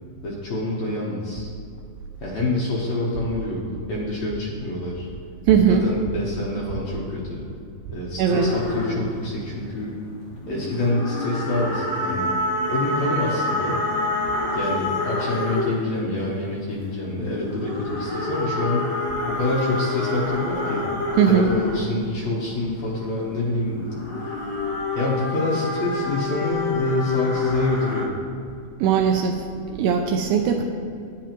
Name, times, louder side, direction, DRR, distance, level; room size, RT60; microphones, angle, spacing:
voice 1, 0.2-1.5 2.2-5.1 5.6-7.4 7.9-10.0 10.5-12.4 12.7-13.8 14.5-19.0 19.3-20.8 21.3-24.3 24.9-28.1, left 2 dB, 80° left, -5 dB, 1.5 m, -27 dB
voice 2, 5.5-5.8 8.2-8.5 21.2-21.5 28.8-29.4 29.7-30.6, right 8 dB, 85° right, 3 dB, 2.0 m, -19 dB
sound 1, 8.2-10.0 10.3-16.0 16.7-22.4 23.4-28.0, left 2 dB, 50° left, 2.5 m, -28 dB
10.5 x 9.1 x 3.0 m, 2.4 s
omnidirectional pair, 4.6 m